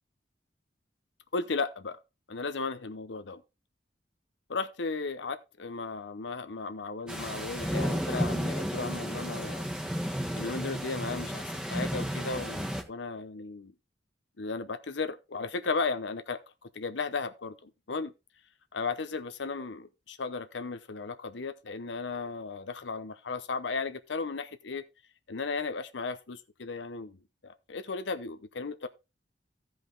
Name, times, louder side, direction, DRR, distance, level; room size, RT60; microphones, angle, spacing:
voice 1, 1.3-2.0 2.3-3.4 4.5-9.7 10.3-13.7 14.4-16.4 16.7-18.1 18.7-24.8 25.3-27.2 27.4-28.9, left 4 dB, 75° left, 0.8 m, -35 dB
sound 1, 7.1-12.8, equal, 5° right, 1.3 m, -33 dB
14.5 x 5.2 x 3.9 m
head